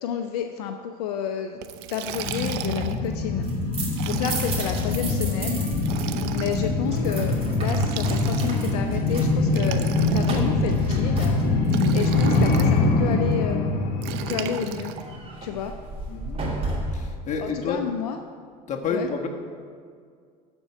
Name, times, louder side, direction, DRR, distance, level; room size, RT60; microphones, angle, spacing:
voice 1, 0.0-1.6 1.9-3.5 4.1-5.7 6.3-11.4 11.9-13.8 14.3-14.9 15.4-15.7 17.4-18.2 18.9-19.3, left 8 dB, 75° left, 6 dB, 0.6 m, -30 dB
Liquid, 1.6-3.1 3.9-5.0 5.8-6.7 7.6-8.7 9.5-10.7 11.7-12.7 14.0-15.0, right 11 dB, 60° right, 0.7 m, -35 dB
sound 1, 2.1-15.3 15.6-15.7, left 2 dB, 55° left, 1.4 m, -24 dB
sound 2, 3.3-6.1 6.3-11.9 15.0-17.2, right 2 dB, 30° right, 2.5 m, -34 dB
voice 2, 16.1-16.4 16.9-17.8 18.7-19.3, left 5 dB, 35° left, 1 dB, 1.5 m, -29 dB
12.5 x 4.5 x 6.4 m, 2.1 s
hypercardioid pair, 80°, 20 cm